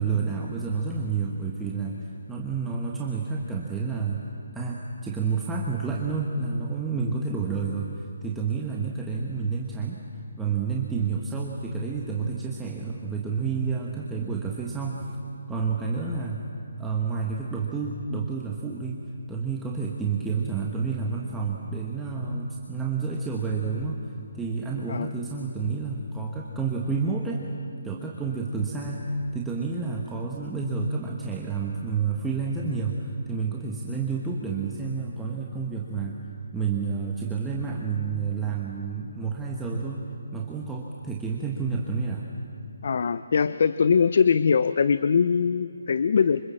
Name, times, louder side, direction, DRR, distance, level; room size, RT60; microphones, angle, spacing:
voice 1, 0.0-4.2 4.5-10.0 10.4-15.0 15.5-16.4 16.8-19.0 19.3-27.4 27.8-36.2 36.5-40.0 40.3-42.2, right 5 dB, 5° right, -3 dB, 1.5 m, -29 dB
voice 2, 42.8-46.4, left 6 dB, 55° left, 15 dB, 0.6 m, -22 dB
26.0 x 25.5 x 7.4 m, 2.5 s
hypercardioid pair, 155°, 0 cm